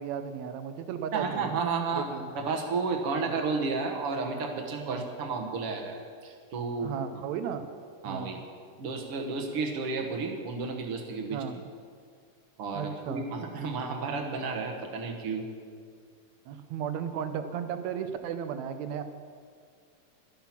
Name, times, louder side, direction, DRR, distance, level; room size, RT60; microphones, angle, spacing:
voice 1, 0.0-1.5 1.9-2.3 3.2-3.3 4.9-5.0 6.8-7.7 8.0-8.4 11.3-11.6 12.7-13.3 16.5-19.0, right 8 dB, 75° right, 9 dB, 1.8 m, -35 dB
voice 2, 1.1-2.1 2.4-7.2 8.0-8.5 8.8-11.6 12.6-15.5, right 4 dB, 55° right, 2 dB, 1.7 m, -32 dB
12.0 x 12.0 x 5.8 m, 2.1 s
omnidirectional pair, 3.7 m